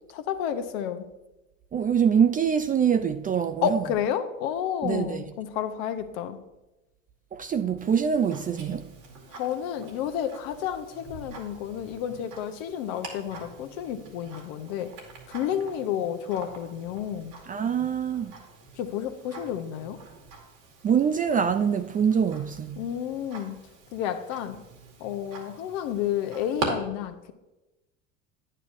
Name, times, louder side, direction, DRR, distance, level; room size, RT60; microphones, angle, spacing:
voice 1, 0.1-1.1 3.6-6.4 9.3-14.9 15.3-17.3 18.8-20.0 22.8-23.6 23.9-24.6 25.0-27.3, left 9 dB, 70° left, 1.0 m, -31 dB
voice 2, 1.7-3.8 4.8-5.2 7.3-8.9 17.5-18.3 20.8-22.8, right 7 dB, 25° right, 0.3 m, -24 dB
Tick-tock, 7.8-26.7, right 5 dB, 85° right, 2.2 m, -44 dB
9.6 x 8.8 x 2.6 m
hypercardioid pair, 85°, 40 cm